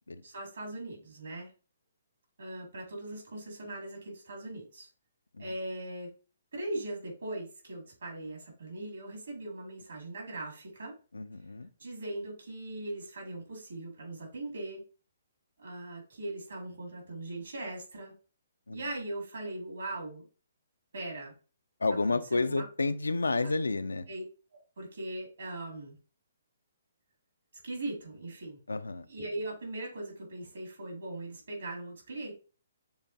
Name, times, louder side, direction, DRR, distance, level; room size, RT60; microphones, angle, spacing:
voice 1, 0.2-1.5 2.4-4.9 5.4-6.1 6.5-11.0 11.8-14.8 15.6-18.1 18.7-20.3 20.9-21.3 22.1-22.7 24.1-24.2 24.5-26.0 27.6-28.6 29.1-32.3, right 2 dB, 70° right, 0 dB, 2.4 m, -40 dB
voice 2, 11.1-11.7 18.7-18.8 21.8-24.1 28.7-29.1, left 3 dB, 80° left, 13 dB, 0.4 m, -30 dB
6.7 x 2.5 x 2.8 m, 0.35 s
figure-of-eight pair, 130°, 0 cm